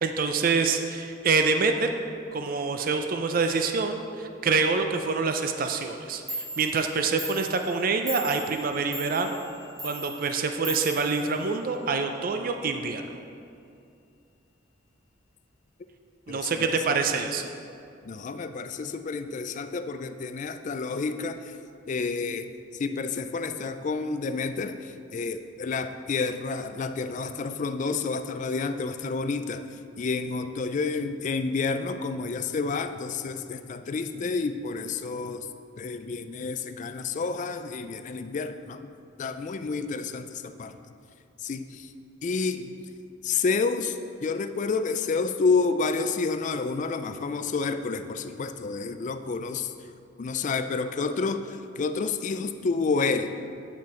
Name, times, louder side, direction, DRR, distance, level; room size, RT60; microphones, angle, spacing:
voice 1, 0.0-1.9 2.3-9.4 9.8-13.0 16.3-17.4, right 4 dB, 45° right, 6 dB, 0.4 m, -26 dB
Clock, 6.0-6.1 6.3-11.9, right 2 dB, 15° right, 1.8 m, -39 dB
voice 2, 16.3-16.8 18.0-21.6 21.9-35.5 35.8-38.9 39.2-40.8 41.4-41.9 42.2-42.8 43.2-49.9 50.2-53.4, left 4 dB, 40° left, 10 dB, 0.3 m, -29 dB
8.8 x 6.1 x 4.3 m, 2.4 s
head